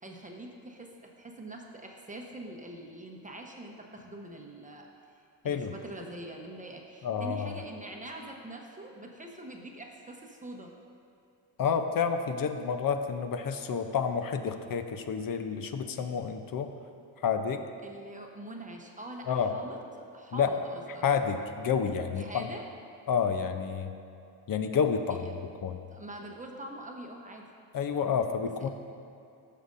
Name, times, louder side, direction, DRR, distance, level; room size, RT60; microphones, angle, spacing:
voice 1, 0.0-10.7 17.8-21.0 22.2-22.6 25.1-25.2 25.9-27.5, right 1 dB, 20° right, 1 dB, 0.9 m, -44 dB
voice 2, 7.0-7.6 11.6-16.7 17.2-17.6 19.3-19.5 20.3-20.5 21.0-22.5 23.1-23.9 24.5-25.3 25.6-25.8 27.7-28.7, left 6 dB, 50° left, 7 dB, 0.7 m, -29 dB
15.0 x 6.6 x 2.6 m, 2.5 s
cardioid pair, 110°, 44 cm